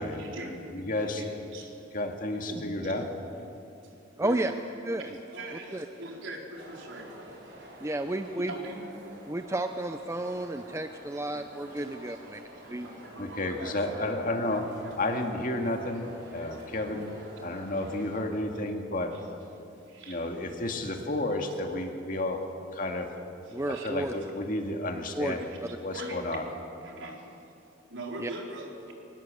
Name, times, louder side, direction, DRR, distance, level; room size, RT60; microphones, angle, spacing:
voice 1, 0.0-0.7 0.9-1.8 2.5-3.0 3.4-3.5 3.8-3.9 4.2-4.5 5.0-7.8 8.3-8.8 9.2-9.3 11.8-15.1 19.1-19.3 19.5-20.4 20.8-21.0 23.4-24.0 25.2-25.6 25.9-26.2 26.8-27.3 27.9-28.7, right 1 dB, 80° right, 0 dB, 4.2 m, -43 dB
voice 2, 0.7-1.2 1.9-3.1 13.2-14.7 15.0-17.1 17.4-19.1 20.1-22.4 22.7-23.1 23.8-25.5 25.8-26.4, left 1 dB, 45° left, 3 dB, 2.2 m, -31 dB
voice 3, 4.2-4.5 4.8-5.0 5.7-5.8 7.8-8.5 9.3-12.4 12.7-12.9 23.5-24.1 25.2-25.4 28.2-28.3, right 1 dB, 15° right, 7 dB, 0.6 m, -31 dB
sound 1, 6.5-18.2, equal, 60° right, 5.0 m, -48 dB
25.0 x 19.0 x 7.8 m, 2.7 s
head